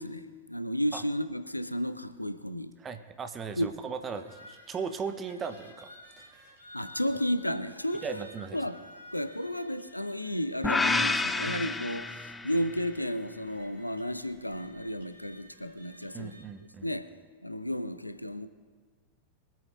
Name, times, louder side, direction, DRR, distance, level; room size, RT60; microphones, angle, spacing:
voice 1, 0.0-2.7 3.6-3.7 6.7-8.2 8.5-8.8 9.1-16.4 16.8-17.1 17.4-18.5, equal, 85° left, 0.5 m, -33 dB
voice 2, 2.8-6.5 7.9-8.6 16.1-16.9, right 5 dB, 20° right, 0.8 m, -38 dB
sound 1, 4.0-16.4, left 1 dB, 80° right, 3.1 m, -54 dB
sound 2, 10.6-12.8, left 3 dB, 10° left, 0.3 m, -29 dB
24.5 x 8.6 x 2.6 m
figure-of-eight pair, 90°, 0 cm